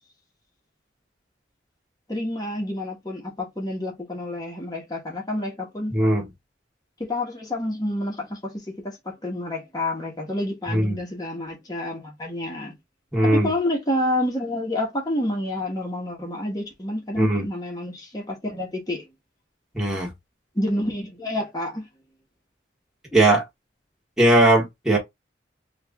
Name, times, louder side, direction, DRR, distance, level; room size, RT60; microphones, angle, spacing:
voice 1, 2.1-6.0 7.0-12.7 13.2-19.1 20.5-21.8, left 1 dB, 20° left, 1.1 m, -29 dB
voice 2, 5.9-6.3 10.7-11.0 13.1-13.5 17.2-17.4 19.7-20.1 23.1-23.4 24.2-25.0, right 1 dB, 5° right, 1.1 m, -19 dB
3.1 x 2.5 x 3.5 m
head